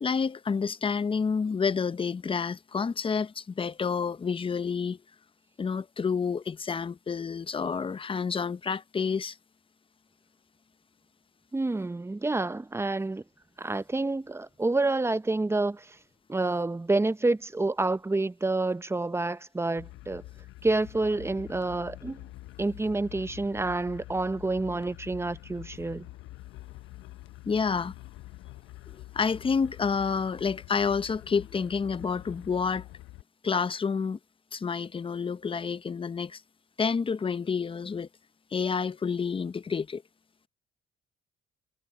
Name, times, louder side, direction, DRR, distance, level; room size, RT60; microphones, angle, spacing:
voice 1, 0.0-5.0 5.6-9.4 27.5-27.9 28.9-32.8 33.4-34.2 34.5-36.4 36.8-38.1 38.5-40.0, left 5 dB, 25° left, 0.6 m, -29 dB
voice 2, 11.5-13.2 13.6-16.0 16.3-20.2 20.6-22.2 22.6-26.1, right 2 dB, 15° right, 0.7 m, -28 dB
sound 1, 19.8-33.2, left 16 dB, 85° left, 0.6 m, -46 dB
cardioid pair, 90°, 20 cm